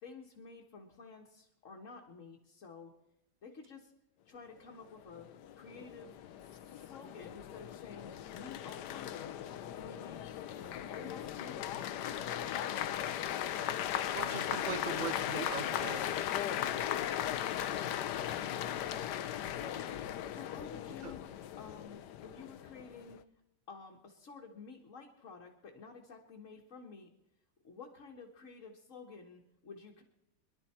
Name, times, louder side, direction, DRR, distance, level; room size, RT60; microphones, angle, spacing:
voice 1, 0.0-2.9 3.4-3.9 4.2-9.4 9.8-10.3 10.6-13.1 20.3-21.2 21.6-23.2 23.7-27.1 27.6-30.0, left 4 dB, 50° left, 0 dB, 1.7 m, -51 dB
sound 1, 5.0-23.2, left 11 dB, 75° left, 1.3 m, -38 dB
voice 2, 14.1-16.1 21.0-21.1, right 6 dB, 40° right, 12 dB, 0.7 m, -40 dB
23.0 x 11.5 x 4.3 m, 0.90 s
omnidirectional pair, 1.9 m